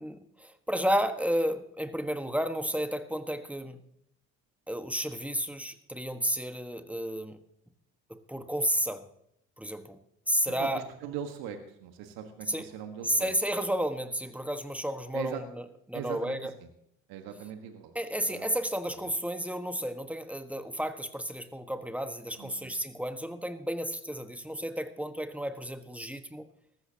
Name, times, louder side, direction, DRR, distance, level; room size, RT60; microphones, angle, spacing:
voice 1, 0.0-3.8 4.7-7.4 8.1-9.1 9.6-10.0 10.3-10.8 12.5-12.7 13.0-16.5 17.9-26.5, equal, 5° right, 8 dB, 1.4 m, -32 dB
voice 2, 10.6-13.3 15.1-15.4 15.9-16.4 17.1-17.9 18.3-18.4 22.4-22.6, right 8 dB, 70° right, 6 dB, 1.5 m, -40 dB
19.5 x 14.5 x 2.9 m, 0.78 s
hypercardioid pair, 55°, 37 cm